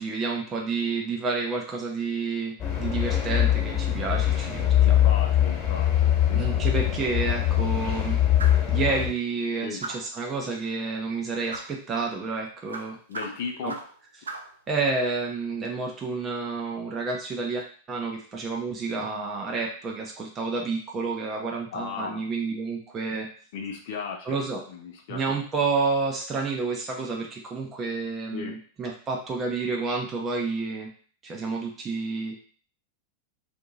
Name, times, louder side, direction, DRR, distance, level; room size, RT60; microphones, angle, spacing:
voice 1, 0.0-5.1 6.3-8.2 8.7-13.0 13.6-13.7 14.7-23.3 24.2-24.6 25.1-30.9 31.2-32.4, right 4 dB, 25° right, 0 dB, 0.7 m, -30 dB
sound 1, 2.6-9.1, left 11 dB, 25° left, 1.4 m, -23 dB
voice 2, 4.8-6.6 9.6-9.8 13.1-13.8 21.7-22.3 23.5-24.4 24.7-25.4 28.3-28.5, left 6 dB, 50° left, 1 dB, 0.6 m, -36 dB
sound 2, 8.4-8.7 9.8-10.2 11.5-11.8 12.7-14.0 14.3-14.6, right 3 dB, 70° right, 0.4 m, -37 dB
2.7 x 2.5 x 4.0 m, 0.43 s
figure-of-eight pair, 90°, 0 cm